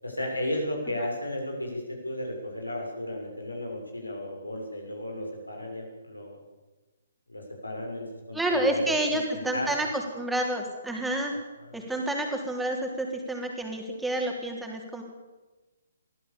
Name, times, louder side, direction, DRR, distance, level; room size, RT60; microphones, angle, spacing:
voice 1, 0.0-6.4 7.3-9.9 11.3-11.8, left 1 dB, 90° left, 1 dB, 6.9 m, -34 dB
voice 2, 8.3-11.3 11.7-15.0, right 1 dB, 5° right, 1 dB, 3.7 m, -29 dB
23.0 x 15.5 x 7.2 m, 1.2 s
figure-of-eight pair, 130°, 0 cm